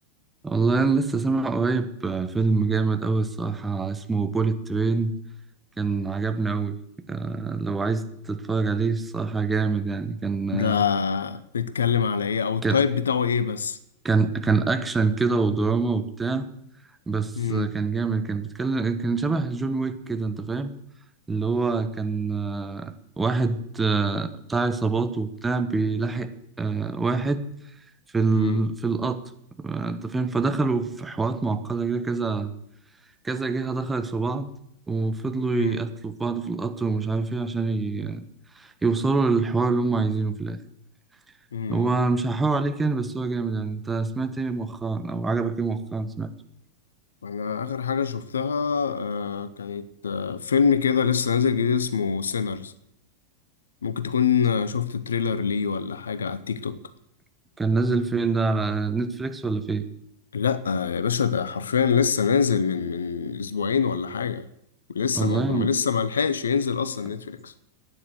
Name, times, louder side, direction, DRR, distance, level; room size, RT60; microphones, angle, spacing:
voice 1, 0.4-5.1 5.8-6.8 7.1-10.8 12.6-12.8 14.0-16.5 17.1-20.7 21.3-26.3 26.6-27.4 28.1-29.2 29.6-32.5 33.2-34.5 34.9-38.2 38.5-40.6 41.7-46.3 57.6-59.9 65.2-65.7, right 4 dB, 10° right, 1.2 m, -25 dB
voice 2, 10.5-13.8 17.3-17.7 28.3-28.6 35.5-35.8 41.5-41.9 47.2-52.7 53.8-56.8 60.3-64.5 64.9-67.5, left 6 dB, 70° left, 0.8 m, -25 dB
14.0 x 9.9 x 7.9 m
figure-of-eight pair, 90°, 0 cm